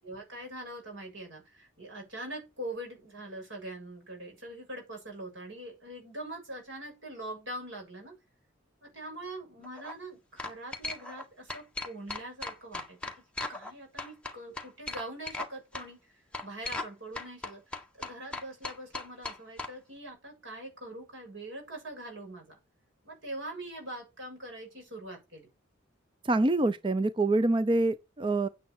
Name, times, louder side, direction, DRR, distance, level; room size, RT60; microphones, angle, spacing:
voice 1, 0.0-8.2 8.8-13.0 13.5-16.0 16.4-22.6 23.0-25.5, right 1 dB, 75° right, 7.1 m, -43 dB
sound 1, 9.6-9.9 10.4-11.2 11.5-13.7 14.0-15.5 15.7-15.9 16.3-16.9 17.1-19.7, left 2 dB, 5° left, 1.4 m, -37 dB
voice 2, 26.3-28.5, right 2 dB, 25° right, 0.5 m, -26 dB
9.5 x 9.4 x 4.7 m
head